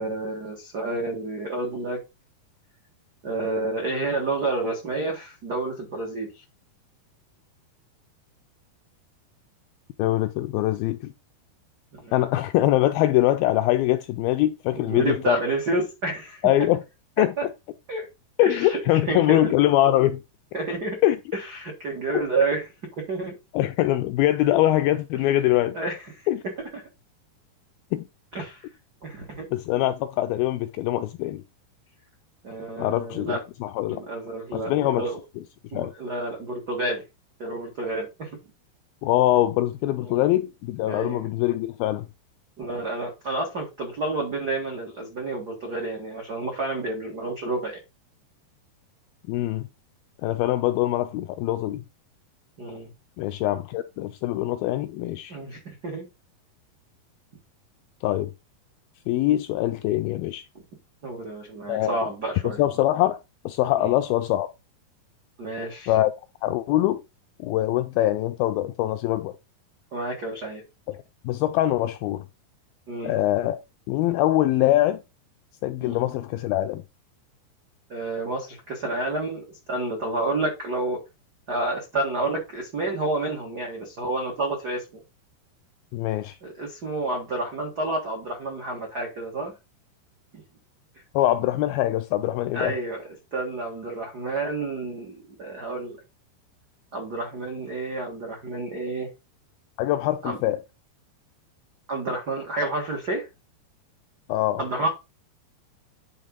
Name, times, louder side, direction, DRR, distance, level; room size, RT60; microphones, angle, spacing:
voice 1, 0.0-2.0 3.2-6.4 12.0-12.1 14.7-16.5 17.2-17.4 17.9-18.0 18.4-18.8 19.1-19.5 20.5-21.0 21.3-22.7 23.0-23.4 25.1-25.2 25.7-26.1 26.7-26.8 28.3-28.7 29.0-29.5 32.4-33.4 33.9-35.2 35.7-37.0 37.4-38.3 40.0-40.2 40.9-41.3 42.6-47.8 52.6-52.9 55.3-56.1 61.0-62.6 63.8-63.9 65.4-65.9 69.9-70.6 72.9-73.1 75.8-76.0 77.9-81.0 81.5-84.8 86.4-89.5 92.5-93.0 93.3-96.0 96.9-99.1 100.2-100.4 101.9-103.3 104.6-104.9, right 2 dB, 85° right, 0.8 m, -29 dB
voice 2, 10.0-11.1 12.1-15.4 16.4-16.8 17.2-17.3 18.4-20.2 21.0-21.2 23.5-25.8 26.3-26.4 27.9-28.1 29.5-31.4 32.8-34.0 34.5-35.1 35.7-35.9 39.0-42.1 49.3-49.6 50.2-51.8 53.2-55.3 58.0-58.3 59.1-60.4 61.7-62.0 62.4-63.2 63.5-64.5 65.9-66.1 66.4-67.0 67.4-69.4 70.9-71.0 71.2-72.3 73.0-73.6 73.9-75.0 75.6-76.8 85.9-86.4 91.2-92.7 99.8-100.6 104.3-104.6, left 14 dB, 85° left, 2.1 m, -23 dB
9.7 x 3.6 x 5.2 m
omnidirectional pair, 4.7 m